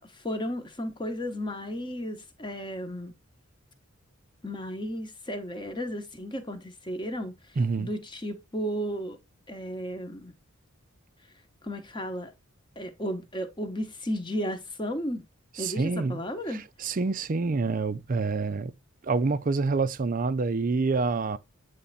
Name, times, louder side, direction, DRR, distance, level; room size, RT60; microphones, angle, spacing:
voice 1, 0.0-3.1 4.4-7.3 7.8-9.2 9.5-10.3 11.6-12.3 12.8-15.2 15.6-16.6, equal, 20° left, 1.0 m, -34 dB
voice 2, 7.6-7.9 15.6-16.2 16.5-18.7 19.0-21.4, right 4 dB, 40° right, 0.4 m, -27 dB
8.4 x 3.3 x 4.0 m
head